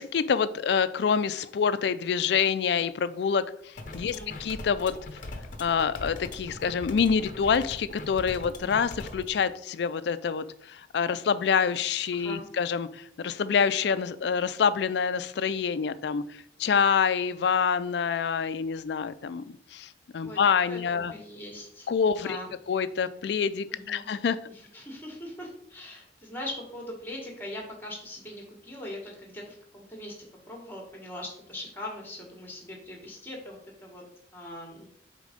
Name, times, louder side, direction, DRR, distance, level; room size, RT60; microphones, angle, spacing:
voice 1, 0.0-5.2 5.6-19.4 19.7-21.1 21.9-22.4 22.7-24.4, left 6 dB, 65° left, 13 dB, 0.3 m, -27 dB
sound 1, 3.8-9.3, left 2 dB, 45° left, 0.8 m, -41 dB
voice 2, 12.1-12.4 20.2-20.4 20.7-21.9 22.2-22.5 23.7-24.1 24.5-30.2 30.5-34.0 34.3-34.9, left 1 dB, 10° left, 0 dB, 1.5 m, -41 dB
5.1 x 3.7 x 5.1 m, 0.68 s
head